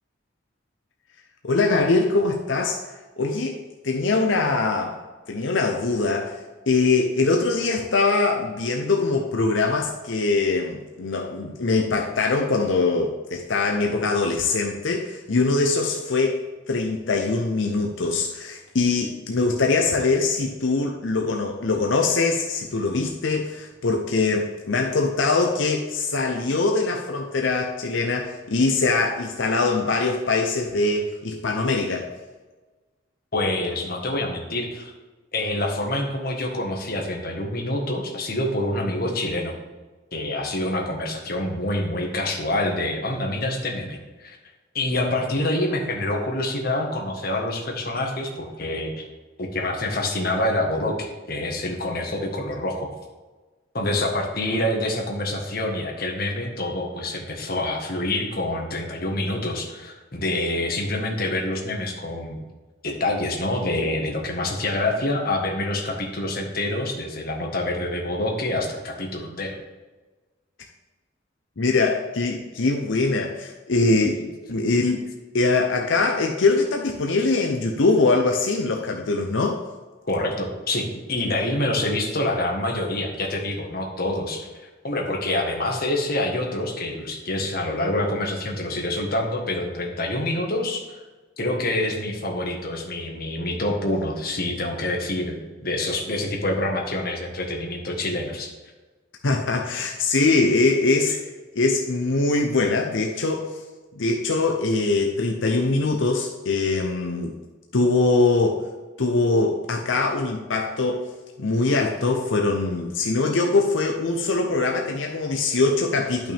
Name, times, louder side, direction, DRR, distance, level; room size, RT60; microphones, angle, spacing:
voice 1, 1.4-2.8 3.2-5.0 5.3-6.4 6.7-16.4 16.7-32.0 71.6-75.0 75.3-79.6 99.2-101.2 101.5-103.5 104.0-107.3 107.7-108.6 109.0-111.1 111.4-116.3, left 3 dB, 85° left, 2 dB, 0.8 m, -22 dB
voice 2, 33.3-34.9 35.3-39.5 40.1-44.4 44.7-49.1 49.4-52.9 53.7-62.4 62.8-69.6 80.0-84.5 84.8-91.0 91.4-95.4 95.6-98.5, left 1 dB, 50° left, 1 dB, 1.5 m, -26 dB
11.5 x 5.9 x 3.5 m, 1.2 s
head